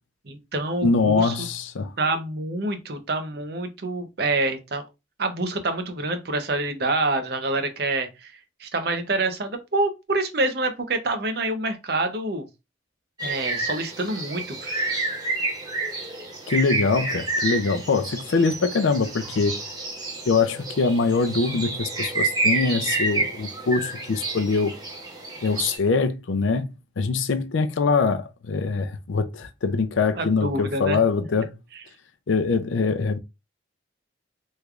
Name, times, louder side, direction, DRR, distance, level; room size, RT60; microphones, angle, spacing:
voice 1, 0.3-1.3 2.0-4.8 5.2-8.3 8.6-12.4 13.2-15.2 30.2-31.0 31.7-31.8, right 2 dB, 55° right, 0.7 m, -27 dB
voice 2, 0.8-1.9 16.5-19.6 20.3-24.8 25.4-31.5 32.3-33.2, left 4 dB, 80° left, 0.5 m, -23 dB
sound 1, 13.2-25.7, right 3 dB, 20° right, 0.9 m, -29 dB
3.4 x 3.2 x 2.4 m
head